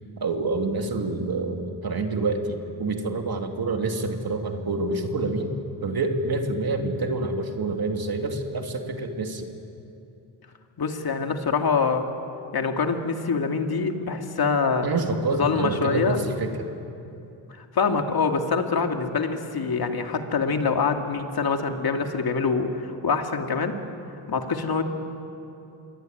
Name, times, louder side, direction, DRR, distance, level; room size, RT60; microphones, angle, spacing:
voice 1, 0.2-5.6 5.8-9.5 14.8-16.5, right 3 dB, 50° right, 3 dB, 3.0 m, -27 dB
voice 2, 10.8-12.1 12.5-14.9 15.3-16.2 17.7-23.7 24.3-24.8, left 5 dB, 55° left, 4 dB, 2.6 m, -25 dB
27.0 x 22.5 x 9.4 m, 2.7 s
cardioid pair, 80°, 45 cm